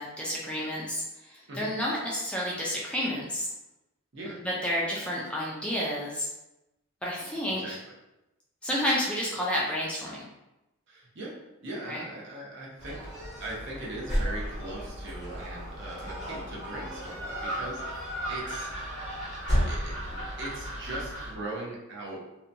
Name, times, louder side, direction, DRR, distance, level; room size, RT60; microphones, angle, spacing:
voice 1, 0.0-3.5 4.3-6.3 7.0-7.8 8.6-10.2 11.9-12.0, equal, 5° left, -5 dB, 0.3 m, -30 dB
voice 2, 10.9-11.3 11.6-13.0 13.4-18.7 19.7-19.9 20.4-22.2, right 2 dB, 55° right, -4 dB, 0.7 m, -39 dB
Gull seagull, 12.8-21.3, equal, 35° right, 1.3 m, -33 dB
2.7 x 2.2 x 2.5 m, 0.95 s
head